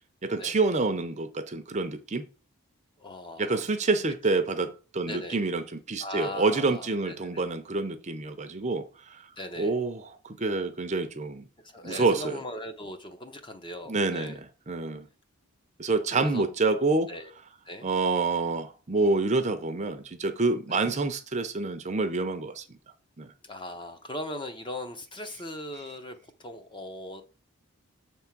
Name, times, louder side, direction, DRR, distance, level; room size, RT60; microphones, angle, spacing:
voice 1, 0.2-2.2 3.4-9.3 9.6-11.5 11.8-12.4 13.9-14.4 14.7-15.1 15.8-17.1 17.8-22.8 23.2-23.3, right 3 dB, 30° right, 0.6 m, -27 dB
voice 2, 3.0-3.6 5.0-5.4 6.0-7.4 9.4-9.7 11.6-14.4 16.1-16.4 17.1-17.3 17.6-17.9 20.7-20.9 23.4-27.2, left 1 dB, 20° left, 0.7 m, -39 dB
7.3 x 3.6 x 5.9 m
head